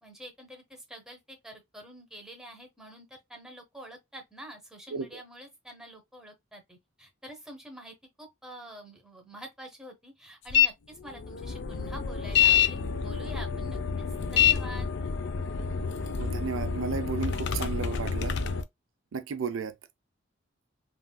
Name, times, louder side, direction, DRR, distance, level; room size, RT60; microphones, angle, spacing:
voice 1, 0.0-14.9, right 1 dB, 5° right, 0.8 m, -47 dB
sound 1, 10.5-10.7 11.1-18.6, left 8 dB, 60° left, 0.4 m, -27 dB
voice 2, 16.2-18.4 19.1-19.7, right 5 dB, 80° right, 0.5 m, -33 dB
3.5 x 2.4 x 2.2 m
head